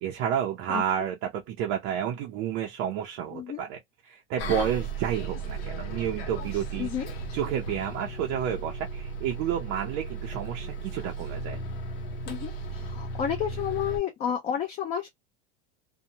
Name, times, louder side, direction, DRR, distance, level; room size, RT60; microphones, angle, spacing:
voice 1, 0.0-6.9 7.3-11.6, right 9 dB, 40° right, 0.5 m, -30 dB
voice 2, 3.3-3.6 6.8-7.1 12.3-15.1, left 9 dB, 25° left, 0.4 m, -31 dB
Bus, 4.4-14.0, right 3 dB, 75° left, 0.9 m, -35 dB
2.7 x 2.1 x 2.7 m
supercardioid pair, 155°, 30 cm